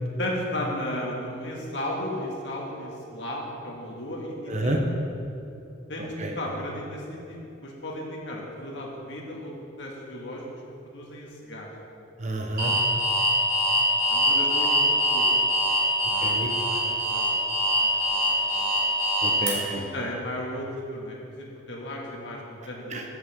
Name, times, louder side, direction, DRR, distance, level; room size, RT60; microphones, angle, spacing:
voice 1, 0.0-4.8 5.9-6.1 6.4-7.4 7.6-10.5 10.8-11.7 14.1-14.7 15.1-15.3 16.0-17.4 17.8-18.2 18.5-18.7 19.7-23.0, left 1 dB, 65° left, -2 dB, 2.0 m, -35 dB
voice 2, 4.5-4.8 6.2-6.4 12.2-12.7 16.2-16.5 19.2-19.8 22.9-23.0, right 1 dB, 40° right, 2 dB, 1.1 m, -29 dB
Alarm, 12.6-19.5, equal, 55° right, 2.8 m, -23 dB
14.5 x 8.0 x 3.7 m, 2.7 s
head